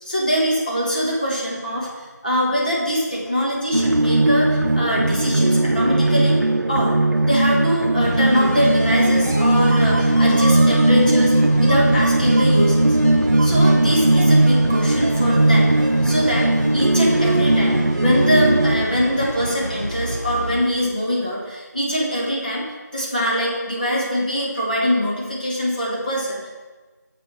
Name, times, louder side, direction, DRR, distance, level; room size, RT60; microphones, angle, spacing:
voice 1, 0.0-6.9 7.2-13.0 13.4-15.8 16.0-22.6 22.9-26.5, equal, 25° left, -5 dB, 1.7 m, -23 dB
sound 1, 3.7-18.9, right 2 dB, 80° right, 0.6 m, -18 dB
sound 2, 8.0-20.5 20.8-20.9, right 1 dB, 15° right, 2.0 m, -28 dB
8.8 x 6.8 x 5.0 m, 1.3 s
figure-of-eight pair, 175°, 10 cm